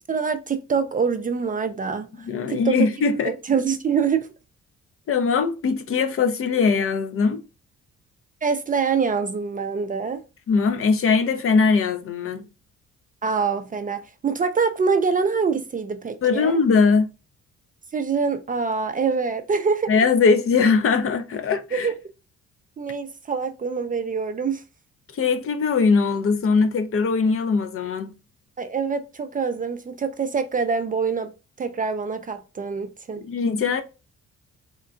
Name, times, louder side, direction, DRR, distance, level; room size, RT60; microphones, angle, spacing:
voice 1, 0.1-2.9 3.2-4.3 8.4-10.2 13.2-16.6 17.9-19.9 21.7-21.9 22.8-24.6 28.6-31.3 31.6-33.2, right 5 dB, 30° right, 0.4 m, -25 dB
voice 2, 2.2-3.3 5.1-7.4 10.5-12.4 16.2-17.1 19.9-21.9 25.1-28.1 33.2-33.8, left 5 dB, 45° left, 0.6 m, -21 dB
3.7 x 2.2 x 2.5 m
cardioid pair, 90°, 30 cm